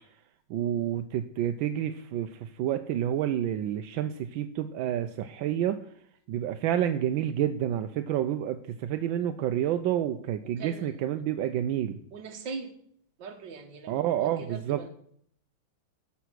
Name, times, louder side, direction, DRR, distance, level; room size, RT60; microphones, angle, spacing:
voice 1, 0.5-5.8 6.3-12.0 13.9-14.8, right 11 dB, 85° right, 8 dB, 1.4 m, -29 dB
voice 2, 10.4-11.0 12.1-12.7 13.2-14.9, right 5 dB, 65° right, 6 dB, 2.0 m, -41 dB
13.0 x 6.9 x 6.1 m, 0.66 s
omnidirectional pair, 2.1 m